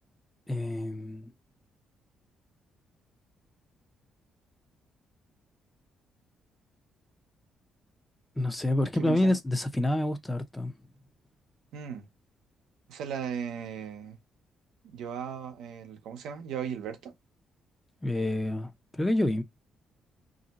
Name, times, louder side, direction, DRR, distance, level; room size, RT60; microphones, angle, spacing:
voice 1, 0.5-1.3 8.4-10.7 18.0-19.4, left 1 dB, 10° left, 0.6 m, -28 dB
voice 2, 9.0-9.4 11.7-12.1 12.9-14.2 14.8-17.1, right 8 dB, 85° right, 0.6 m, -37 dB
2.6 x 2.0 x 3.9 m
cardioid pair, 90°, 0 cm